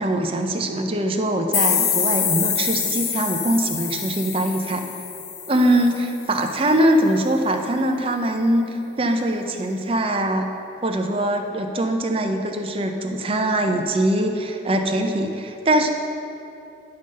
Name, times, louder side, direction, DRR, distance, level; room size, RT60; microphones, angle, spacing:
voice 1, 0.0-4.9 5.5-8.7 9.0-10.5 10.8-15.9, right 1 dB, 30° right, 4 dB, 0.5 m, -22 dB
sound 1, 1.5-6.2, left 7 dB, 55° left, 0.7 m, -25 dB
10.5 x 3.8 x 6.3 m, 2.9 s
head